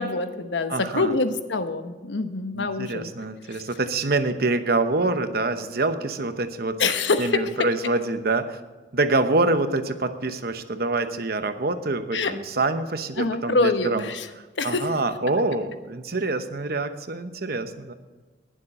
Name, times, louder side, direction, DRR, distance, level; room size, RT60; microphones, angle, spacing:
voice 1, 0.0-3.1 3.5-3.6 6.8-7.7 12.1-12.3 13.2-14.3 14.6-14.9, left 3 dB, 80° left, 8 dB, 1.1 m, -25 dB
voice 2, 0.7-1.1 2.6-6.8 7.2-8.6 8.9-14.1 14.6-17.9, right 2 dB, 55° right, 9 dB, 1.0 m, -26 dB
20.0 x 7.5 x 4.3 m, 1.3 s
head